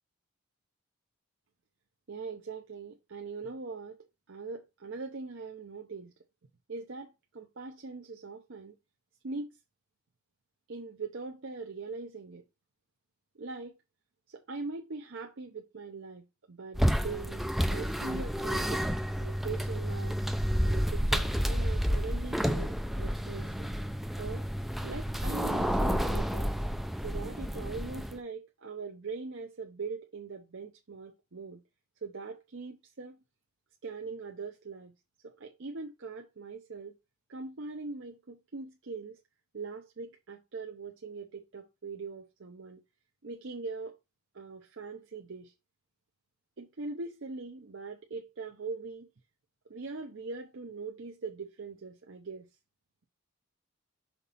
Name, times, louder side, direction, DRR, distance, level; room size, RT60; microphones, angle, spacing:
voice 1, 2.1-6.1 6.7-8.7 9.2-9.6 10.7-12.4 13.3-13.8 14.3-18.8 19.2-20.2 20.6-23.5 24.2-24.5 24.8-26.5 27.0-31.6 32.0-33.2 33.8-34.9 35.2-36.9 37.3-39.2 39.5-42.8 43.2-44.0 44.3-45.5 46.6-49.1 49.7-52.5, right 4 dB, 60° right, 0.7 m, -41 dB
sound 1, 16.7-28.2, equal, ahead, 0.4 m, -30 dB
5.9 x 4.0 x 4.0 m
head